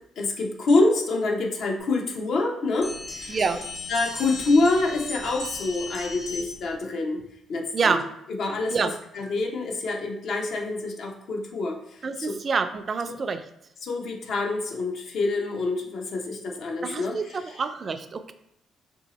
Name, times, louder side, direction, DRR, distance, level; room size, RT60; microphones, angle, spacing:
voice 1, 0.2-3.4 3.9-7.2 7.5-8.0 8.4-8.9 9.1-12.3 13.1-13.2 13.8-17.4, left 2 dB, 70° left, 1 dB, 0.6 m, -26 dB
sound 1, 2.8-6.7, left 3 dB, 55° left, 1.0 m, -37 dB
voice 2, 3.3-3.6 7.7-8.0 8.7-8.9 12.0-13.4 16.8-18.3, right 5 dB, 45° right, 9 dB, 0.3 m, -27 dB
2.7 x 2.7 x 4.0 m, 0.77 s
cardioid pair, 90°, 0 cm